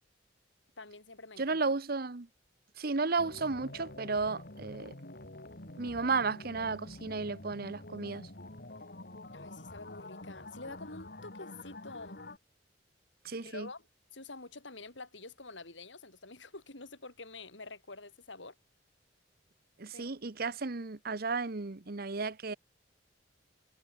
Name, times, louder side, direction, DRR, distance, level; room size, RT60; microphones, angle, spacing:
voice 1, 0.8-1.6 9.3-12.2 13.4-13.8 14.1-18.6 19.9-20.1, left 3 dB, 75° left, 4.8 m, -47 dB
voice 2, 1.4-2.3 2.8-5.0 5.8-8.3 13.2-13.7 19.8-22.5, right 4 dB, 55° right, 1.0 m, -33 dB
sound 1, 3.2-12.4, left 1 dB, 55° left, 3.4 m, -47 dB
head